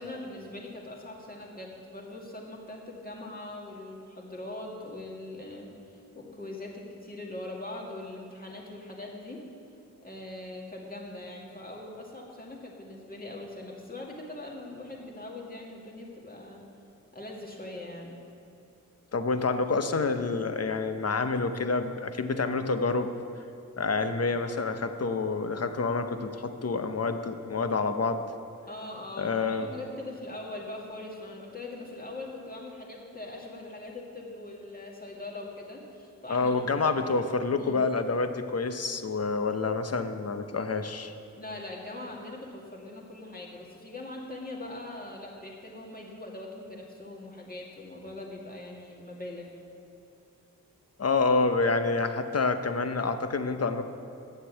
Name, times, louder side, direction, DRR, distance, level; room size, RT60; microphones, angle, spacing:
voice 1, 0.0-9.4 10.0-16.6 17.1-18.2 28.7-36.5 37.6-37.8 41.4-49.5, left 2 dB, 25° left, -3 dB, 2.3 m, -41 dB
voice 2, 19.1-23.1 23.8-28.2 29.2-29.7 36.3-41.1 51.0-53.8, left 4 dB, 45° left, 8 dB, 0.8 m, -28 dB
9.0 x 7.4 x 8.2 m, 2.6 s
cardioid pair, 65°, 33 cm